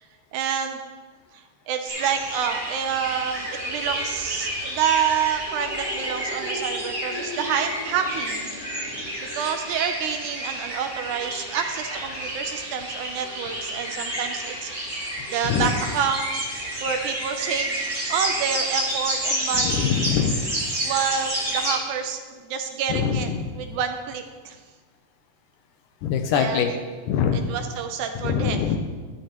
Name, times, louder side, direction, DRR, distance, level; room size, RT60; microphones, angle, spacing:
voice 1, 0.3-0.8 1.3-8.6 9.2-17.8 18.1-19.9 20.8-23.3 23.5-24.6 26.3-26.7 27.3-28.7, right 8 dB, 80° right, 6 dB, 1.9 m, -28 dB
sound 1, 1.9-21.8, right 1 dB, 20° right, 3.0 m, -30 dB
voice 2, 19.6-20.4 22.9-23.4 26.0-26.7 27.1-27.5 28.2-28.8, left 7 dB, 85° left, 6 dB, 2.2 m, -23 dB
12.0 x 11.0 x 2.9 m, 1.5 s
omnidirectional pair, 3.8 m